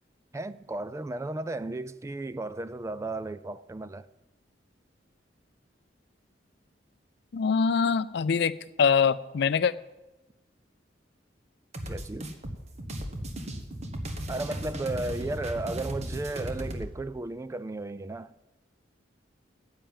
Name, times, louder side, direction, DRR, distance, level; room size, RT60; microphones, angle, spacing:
voice 1, 0.3-4.1 11.9-12.3 14.3-18.3, right 2 dB, 15° right, 0.3 m, -34 dB
voice 2, 7.3-9.7, left 6 dB, 65° left, 0.4 m, -24 dB
sound 1, 11.7-16.9, right 1 dB, 40° right, 1.3 m, -36 dB
10.0 x 8.8 x 7.4 m
head